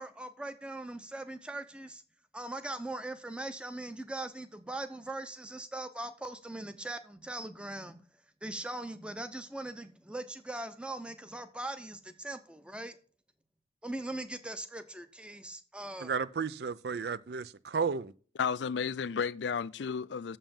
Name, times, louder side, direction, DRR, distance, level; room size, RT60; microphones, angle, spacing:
voice 1, 0.0-2.0 2.3-8.0 8.4-13.0 13.8-16.1, right 2 dB, 5° right, 0.7 m, -40 dB
voice 2, 16.0-18.1, right 5 dB, 60° right, 0.4 m, -33 dB
voice 3, 18.4-20.4, left 6 dB, 80° left, 0.4 m, -32 dB
7.2 x 5.5 x 7.1 m
head